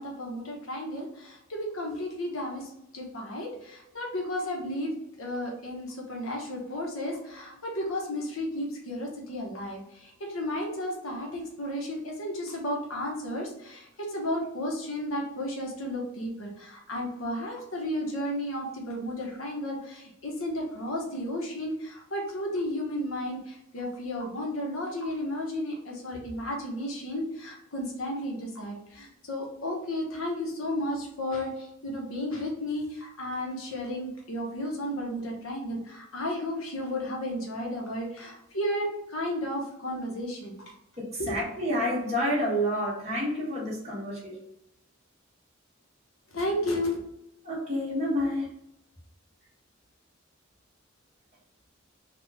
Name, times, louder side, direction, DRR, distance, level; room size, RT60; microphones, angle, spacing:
voice 1, 0.0-40.7 41.2-41.4 46.3-47.0, left 1 dB, 90° left, 0 dB, 1.2 m, -33 dB
voice 2, 41.0-44.4 47.4-48.5, equal, 30° right, -6 dB, 1.5 m, -29 dB
4.2 x 2.5 x 3.4 m, 0.82 s
head